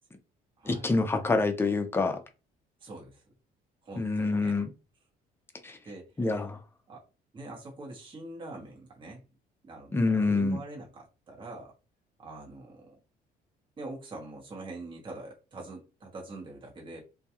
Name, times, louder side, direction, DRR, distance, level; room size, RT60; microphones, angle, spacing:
voice 1, 0.6-2.2 4.0-4.7 5.6-5.8 6.2-6.6 9.9-10.6, left 3 dB, 15° left, 0.5 m, -26 dB
voice 2, 2.8-3.2 3.8-4.6 5.8-6.1 6.9-7.0 7.3-9.2 9.6-10.0 10.3-11.7 12.2-12.9 13.8-17.0, right 2 dB, 30° right, 1.0 m, -44 dB
2.3 x 2.2 x 2.8 m
cardioid pair, 110°, 17 cm